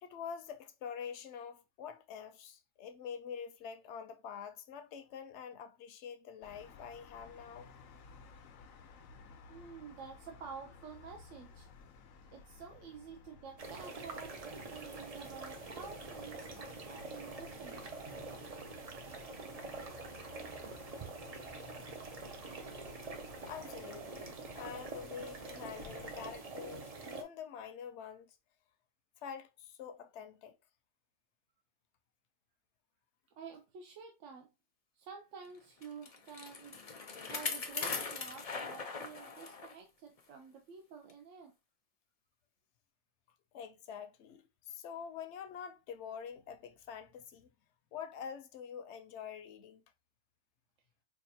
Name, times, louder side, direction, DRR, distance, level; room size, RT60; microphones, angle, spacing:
voice 1, 0.0-7.7 23.4-28.4 29.2-30.5 43.5-47.5 47.9-49.8, left 7 dB, 65° left, 0.8 m, -46 dB
sound 1, 6.4-26.4, left 5 dB, 90° left, 1.0 m, -56 dB
voice 2, 9.5-11.7 12.3-17.9 33.3-34.5 34.9-41.5, right 6 dB, 70° right, 0.9 m, -50 dB
sound 2, 13.6-27.2, right 3 dB, 45° right, 0.5 m, -46 dB
Bicycle, 35.8-39.8 40.2-40.3 41.1-41.2, left 4 dB, 45° left, 0.5 m, -40 dB
4.6 x 2.4 x 2.7 m
omnidirectional pair, 1.4 m